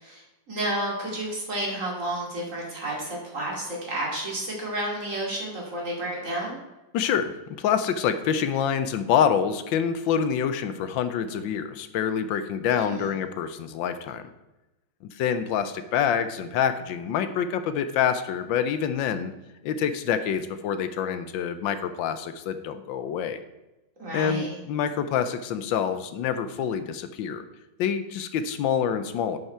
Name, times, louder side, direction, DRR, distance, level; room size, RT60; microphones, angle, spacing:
voice 1, 0.0-6.6 12.8-13.0 24.0-24.6, right 1 dB, 40° right, -3 dB, 2.7 m, -31 dB
voice 2, 6.9-14.3 15.1-19.3 19.6-23.4 24.1-27.4 27.8-29.4, left 8 dB, 85° left, 11 dB, 1.4 m, -26 dB
9.6 x 5.6 x 4.4 m, 1.0 s
omnidirectional pair, 2.0 m